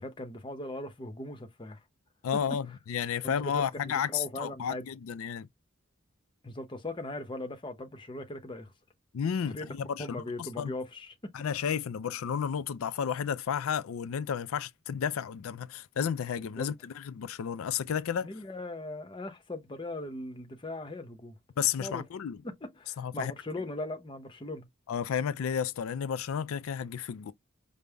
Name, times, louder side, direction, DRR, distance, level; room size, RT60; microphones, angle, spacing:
voice 1, 0.0-1.8 3.2-4.9 6.4-8.7 9.4-9.7 10.0-11.6 16.5-16.7 18.2-21.4 21.8-22.0 22.4-24.7, left 2 dB, 25° left, 0.7 m, -39 dB
voice 2, 2.2-5.5 9.1-10.2 10.6-10.7 11.3-18.3 21.6-22.4 23.0-23.3 24.9-27.3, left 8 dB, 85° left, 0.4 m, -32 dB
5.2 x 2.0 x 3.4 m
head